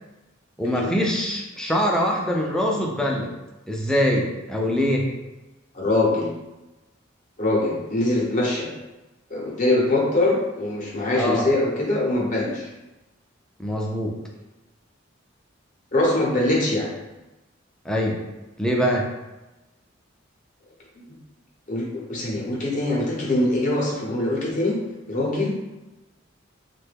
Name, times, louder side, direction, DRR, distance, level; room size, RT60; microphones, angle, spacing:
voice 1, 0.6-3.3 3.7-5.1 11.1-11.5 13.6-14.2 17.9-18.2 18.6-19.1, equal, 5° left, -1 dB, 0.3 m, -23 dB
voice 2, 5.7-6.3 7.4-8.7 9.3-12.7 15.9-16.9 21.0-21.2 21.7-24.8 25.1-25.6, left 2 dB, 40° left, -3 dB, 0.6 m, -23 dB
3.0 x 2.2 x 3.3 m, 1.1 s
head